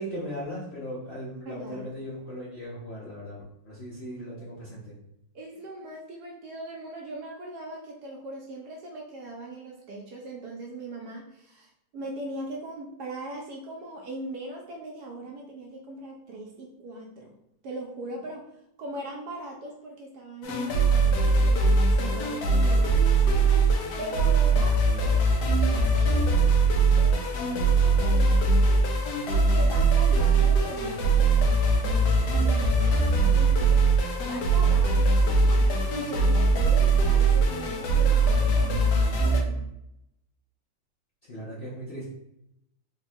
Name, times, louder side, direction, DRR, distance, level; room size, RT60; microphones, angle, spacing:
voice 1, 0.0-3.4 3.6-4.9 41.3-42.1, equal, 50° left, -7 dB, 0.7 m, -37 dB
voice 2, 1.5-1.8 4.4-4.5 5.3-17.3 17.6-18.4 18.8-23.0 24.0-26.4 27.0-28.6 29.3-31.6 31.9-33.9 34.2-39.7, right 2 dB, 70° right, -1 dB, 1.0 m, -40 dB
sound 1, 20.4-39.4, right 3 dB, 70° left, 1.1 m, -21 dB
3.7 x 2.2 x 4.2 m, 0.83 s
omnidirectional pair, 2.1 m